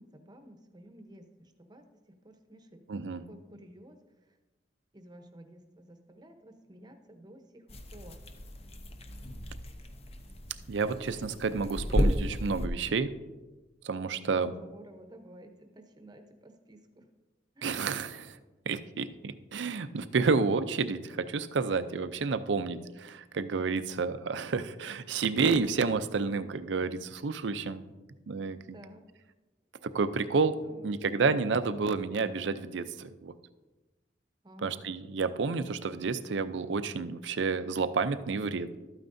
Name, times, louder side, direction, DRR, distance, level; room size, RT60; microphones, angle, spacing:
voice 1, 0.0-1.8 2.2-2.8 3.2-4.4 4.9-8.2 9.3-9.4 11.3-11.5 14.2-17.1 17.5-17.8 28.7-29.1 30.6-31.4 34.4-34.9, right 1 dB, 25° right, 6 dB, 0.8 m, -52 dB
voice 2, 2.9-3.2 10.7-13.1 13.8-14.5 17.6-18.4 18.7-27.8 28.3-28.8 29.8-33.3 34.6-38.8, right 4 dB, 85° right, 11 dB, 0.5 m, -30 dB
sound 1, 7.7-12.7, equal, 35° left, 0.7 m, -33 dB
12.5 x 9.0 x 2.6 m, 1.2 s
head